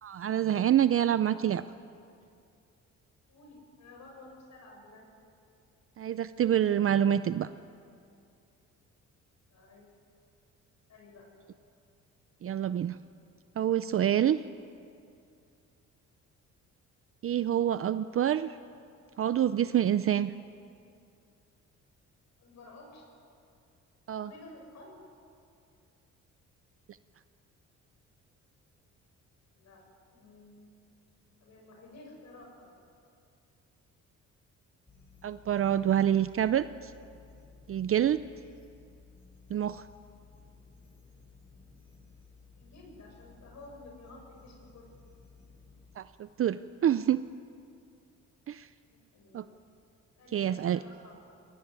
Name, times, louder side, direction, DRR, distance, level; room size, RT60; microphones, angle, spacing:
voice 1, 0.0-1.6 6.0-7.5 12.4-13.0 13.6-14.4 17.2-18.5 19.2-20.3 24.1-24.3 35.2-36.9 37.7-38.2 39.5-39.8 46.0-47.2 48.5-48.7 49.3-49.4 50.3-50.8, right 10 dB, 45° right, 13 dB, 0.6 m, -27 dB
voice 2, 3.3-5.1 9.5-9.9 10.9-11.3 17.5-17.8 22.4-23.1 24.1-25.0 29.6-29.8 30.1-30.7 31.4-32.7 42.6-44.9 48.9-49.4 50.2-51.2, left 2 dB, 65° left, 0 dB, 7.3 m, -52 dB
sound 1, 34.9-46.0, left 4 dB, 25° left, 7.1 m, -56 dB
22.0 x 18.5 x 9.7 m, 2.5 s
cardioid pair, 90°, 30 cm